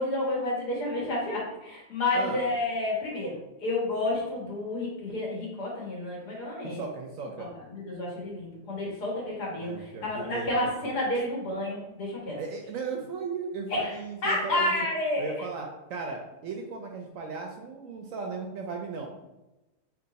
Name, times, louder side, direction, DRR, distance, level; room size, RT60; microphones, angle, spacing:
voice 1, 0.0-6.8 7.7-12.4 13.7-15.5, left 2 dB, 75° left, -4 dB, 2.0 m, -30 dB
voice 2, 6.6-7.5 9.6-11.0 12.4-14.7 15.2-19.1, right 4 dB, 70° right, 2 dB, 0.8 m, -36 dB
3.5 x 2.9 x 4.0 m, 1.0 s
omnidirectional pair, 1.7 m